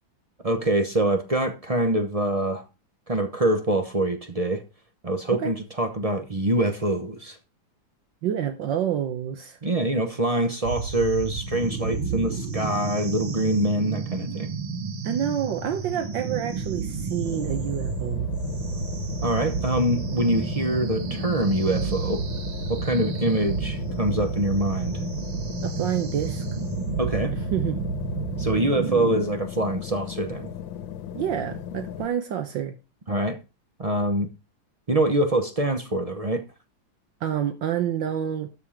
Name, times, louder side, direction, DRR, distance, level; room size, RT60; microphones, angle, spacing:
voice 1, 0.4-2.6 3.1-4.6 5.0-7.4 9.6-14.5 19.2-22.2 22.7-25.0 27.0-27.3 28.4-30.5 33.1-33.4 33.8-34.3 34.9-36.4, right 1 dB, 35° right, 0.5 m, -25 dB
voice 2, 8.2-9.6 15.0-18.3 25.6-26.4 27.3-27.8 31.1-32.8 37.2-38.5, right 10 dB, 70° right, 1.6 m, -28 dB
sound 1, 10.6-29.2, right 5 dB, 85° right, 2.3 m, -31 dB
sound 2, 17.2-32.1, left 10 dB, 85° left, 1.6 m, -37 dB
13.0 x 4.7 x 4.9 m
omnidirectional pair, 2.1 m